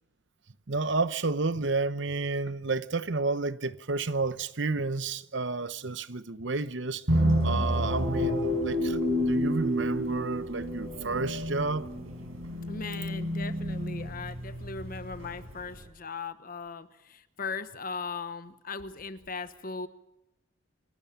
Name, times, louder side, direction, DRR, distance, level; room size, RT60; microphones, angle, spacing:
voice 1, 0.7-7.0 7.4-11.9, right 3 dB, 60° right, 0.9 m, -31 dB
sound 1, 7.1-15.8, equal, 80° right, 5.1 m, -29 dB
voice 2, 12.7-19.9, left 4 dB, 45° left, 1.1 m, -38 dB
27.5 x 12.5 x 8.7 m
head